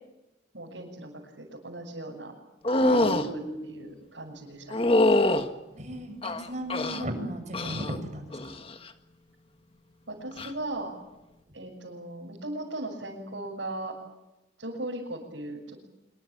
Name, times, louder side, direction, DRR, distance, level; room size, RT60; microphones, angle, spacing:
voice 1, 0.5-2.3 3.0-4.9 10.1-10.9 11.5-13.9 14.6-15.8, right 1 dB, 80° right, -4 dB, 7.0 m, -38 dB
sound 1, 2.6-3.3 4.7-5.5 6.2-7.0 7.5-8.0 8.3-8.8 10.3-10.5, left 1 dB, 30° left, 1.8 m, -24 dB
voice 2, 2.8-3.6 5.3-5.4 5.7-8.6, right 1 dB, 40° right, 7 dB, 6.7 m, -35 dB
26.5 x 24.0 x 8.8 m, 0.97 s
head